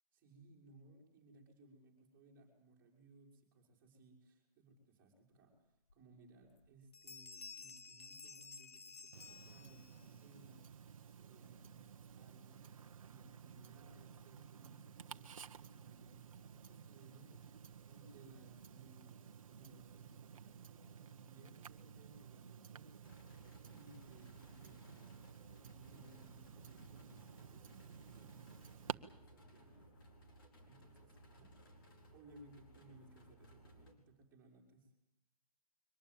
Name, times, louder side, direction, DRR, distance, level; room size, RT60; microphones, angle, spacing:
voice 1, 0.1-10.6 11.2-12.7 13.0-30.4 30.6-31.6 32.1-34.9, right 2 dB, 10° right, -2 dB, 5.4 m, -64 dB
sound 1, 5.9-6.0 6.4-6.7 6.9-10.1, left 4 dB, 90° left, 1.8 m, -53 dB
Tick-tock, 9.1-28.9, right 7 dB, 60° right, 1.3 m, -54 dB
sound 2, 23.0-33.9, right 1 dB, 35° left, 4.5 m, -62 dB
24.0 x 19.5 x 9.3 m, 0.79 s
hypercardioid pair, 170°, 19 cm